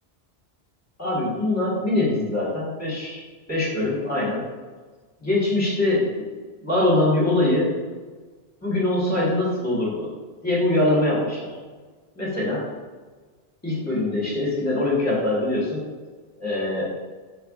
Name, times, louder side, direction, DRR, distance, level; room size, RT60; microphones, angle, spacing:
voice 1, 1.0-3.2 3.5-4.4 5.2-6.2 6.6-7.7 8.6-10.1 10.4-11.5 12.1-12.7 13.6-15.8 16.4-16.9, left 2 dB, 15° left, -6 dB, 1.4 m, -23 dB
4.6 x 4.2 x 2.4 m, 1.4 s
omnidirectional pair, 1.2 m